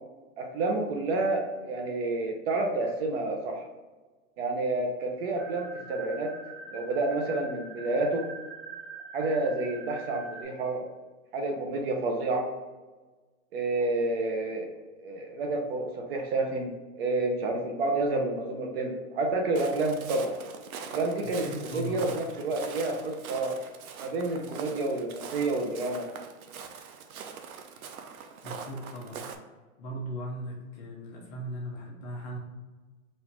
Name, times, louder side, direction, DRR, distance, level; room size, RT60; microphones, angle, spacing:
voice 1, 0.4-3.7 4.4-6.3 6.7-8.2 9.1-10.8 11.3-12.5 13.5-14.7 15.0-20.3 20.9-21.5 21.7-23.5 24.0-26.1, right 2 dB, 45° right, 3 dB, 0.8 m, -29 dB
sound 1, 5.4-10.4, right 4 dB, 25° right, 1.4 m, -44 dB
Walk footsteps, 19.6-29.4, right 6 dB, 90° right, 0.7 m, -43 dB
voice 2, 21.2-22.1 28.4-29.2 29.8-32.4, right 1 dB, 25° left, -3 dB, 0.7 m, -38 dB
4.2 x 2.7 x 4.5 m, 1.3 s
hypercardioid pair, 155°, 41 cm